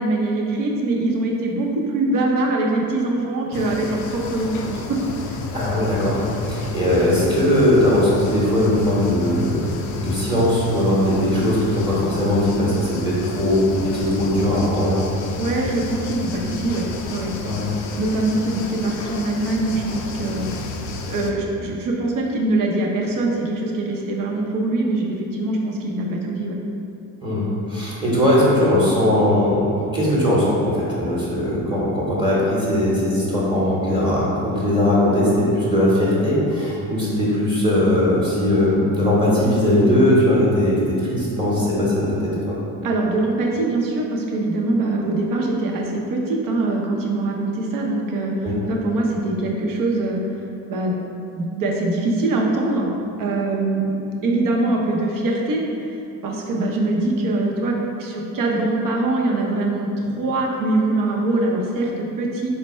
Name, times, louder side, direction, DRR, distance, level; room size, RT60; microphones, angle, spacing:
voice 1, 0.0-5.4 15.4-17.3 18.0-20.5 21.1-26.6 42.8-48.4 48.7-50.2 50.7-51.0 51.4-52.9 53.2-55.9 56.2-62.5, right 2 dB, 50° right, -1 dB, 0.8 m, -23 dB
sound 1, 3.5-21.3, left 3 dB, 45° left, 0.5 m, -31 dB
voice 2, 5.5-9.6 10.0-15.0 17.4-17.6 27.2-42.6 48.4-48.5, left 1 dB, 10° right, -7 dB, 1.1 m, -19 dB
4.1 x 2.2 x 4.2 m, 2.8 s
supercardioid pair, 85°, 43 cm